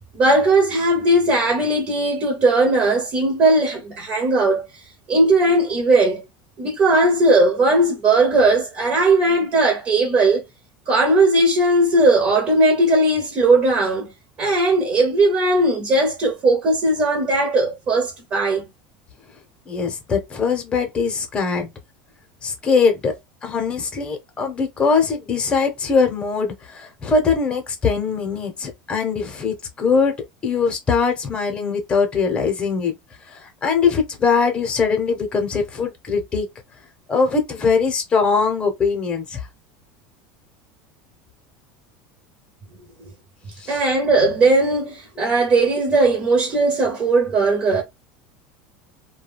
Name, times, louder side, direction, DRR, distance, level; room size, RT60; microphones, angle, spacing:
voice 1, 0.2-4.6 5.1-6.2 6.6-10.4 10.9-14.1 14.4-18.6 43.7-47.8, right 2 dB, 35° right, 0.8 m, -18 dB
voice 2, 19.7-21.7 22.4-23.1 23.4-30.2 30.4-32.9 33.3-36.5 37.1-39.4 43.6-43.8, left 5 dB, 20° left, 0.8 m, -21 dB
2.3 x 2.2 x 3.3 m
supercardioid pair, 140°, 5 cm